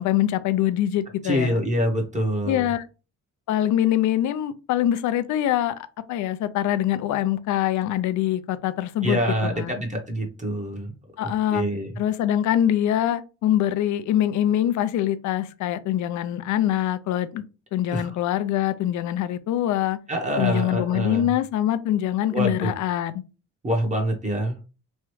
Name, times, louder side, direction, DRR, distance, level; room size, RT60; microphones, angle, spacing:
voice 1, 0.0-1.6 2.5-2.9 3.5-9.2 9.5-9.7 11.2-11.6 12.0-17.4 17.7-20.0 20.4-23.2, left 12 dB, 75° left, 0.5 m, -24 dB
voice 2, 1.2-2.7 9.0-10.9 11.2-11.9 17.9-18.1 20.1-21.3 22.3-22.7 23.6-24.7, equal, 25° right, 0.9 m, -26 dB
3.1 x 2.3 x 3.0 m
cardioid pair, 90°, 30 cm